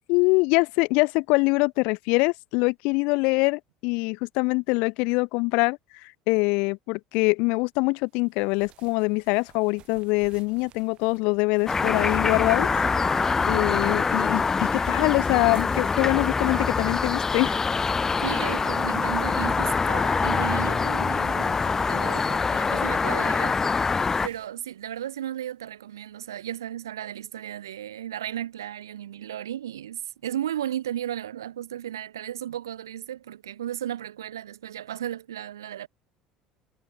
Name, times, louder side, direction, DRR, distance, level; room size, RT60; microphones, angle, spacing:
voice 1, 0.1-12.7 13.5-17.6, left 29 dB, 60° left, 0.5 m, -24 dB
sound 1, 8.1-20.7 21.2-25.6, right 13 dB, 50° right, 7.8 m, -56 dB
sound 2, 11.7-24.3, left 4 dB, 25° left, 0.7 m, -24 dB
Telephone, 12.1-18.5, right 7 dB, 35° right, 4.5 m, -46 dB
voice 2, 18.2-35.9, right 11 dB, 80° right, 1.5 m, -35 dB
figure-of-eight pair, 65°, 2 cm